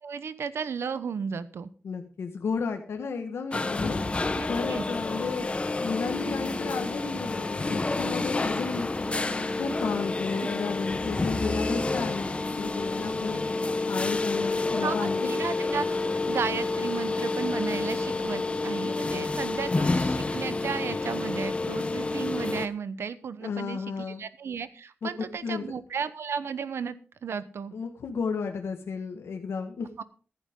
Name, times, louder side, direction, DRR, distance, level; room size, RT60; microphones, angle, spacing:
voice 1, 0.0-1.7 4.4-4.8 10.3-10.5 14.8-16.0 16.3-27.0 27.2-27.7 30.0-30.1, right 6 dB, 80° right, 15 dB, 0.9 m, -34 dB
voice 2, 1.8-4.0 4.5-8.9 9.6-13.4 13.9-15.3 23.4-24.2 25.0-25.7 27.7-29.9, left 5 dB, 90° left, 4 dB, 1.5 m, -33 dB
sound 1, 3.5-22.7, left 3 dB, 25° left, 0.9 m, -29 dB
14.5 x 11.5 x 3.7 m, 0.38 s
wide cardioid pair, 110°, 4 cm